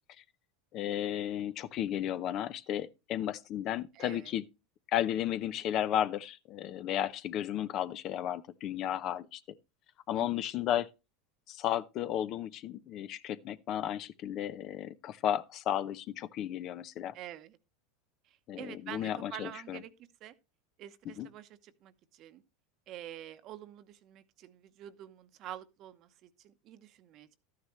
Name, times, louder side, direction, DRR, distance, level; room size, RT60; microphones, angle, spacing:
voice 1, 0.7-4.5 4.9-9.4 10.1-10.9 11.5-17.1 18.5-19.8 21.0-21.3, left 11 dB, 45° left, 0.7 m, -34 dB
voice 2, 3.9-4.3 10.1-10.5 17.1-17.6 18.6-19.9 20.2-20.3 20.8-21.5 21.8-22.4 22.9-27.4, right 12 dB, 45° right, 1.0 m, -47 dB
13.0 x 9.5 x 3.2 m
supercardioid pair, 125°, 0 cm